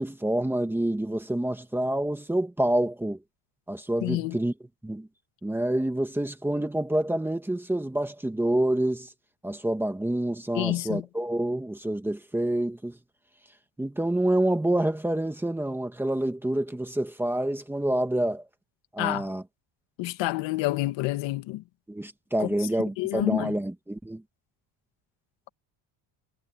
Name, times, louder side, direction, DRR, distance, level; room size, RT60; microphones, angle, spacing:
voice 1, 0.0-3.2 3.7-4.5 4.8-5.1 5.4-9.1 9.4-13.0 13.8-18.4 18.9-19.4 21.9-24.2, right 1 dB, 5° right, 1.6 m, -27 dB
voice 2, 4.0-4.4 10.5-11.0 19.0-19.3 20.0-21.6 22.4-22.5 23.0-23.5, left 18 dB, 65° left, 1.8 m, -28 dB
cardioid pair, 175°, 48 cm